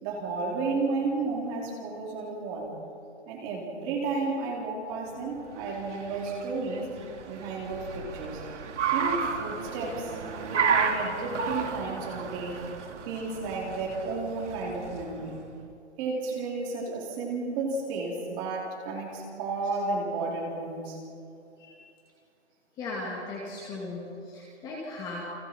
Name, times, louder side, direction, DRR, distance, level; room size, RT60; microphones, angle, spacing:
voice 1, 0.0-2.7 3.3-7.0 7.3-8.4 8.9-10.1 10.5-12.6 13.0-15.4 16.0-21.0, right 3 dB, 20° right, -2 dB, 3.3 m, -32 dB
Car, 5.2-15.5, right 6 dB, 85° right, 3.1 m, -32 dB
voice 2, 22.8-25.2, left 2 dB, 10° left, -4 dB, 2.3 m, -37 dB
30.0 x 25.5 x 4.5 m, 2.6 s
hypercardioid pair, 180°, 35 cm